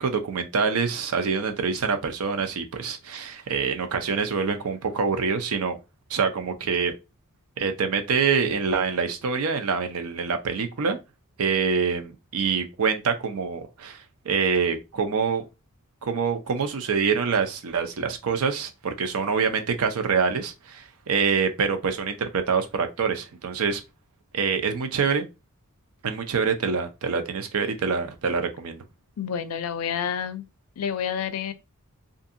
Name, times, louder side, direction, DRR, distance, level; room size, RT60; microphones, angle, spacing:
voice 1, 0.0-5.8 6.1-6.9 7.6-11.0 11.4-15.4 16.0-23.8 24.3-25.3 26.0-28.8, right 5 dB, 80° right, 0.5 m, -25 dB
voice 2, 29.2-30.4 30.8-31.5, left 8 dB, 80° left, 0.4 m, -29 dB
2.6 x 2.6 x 2.5 m
head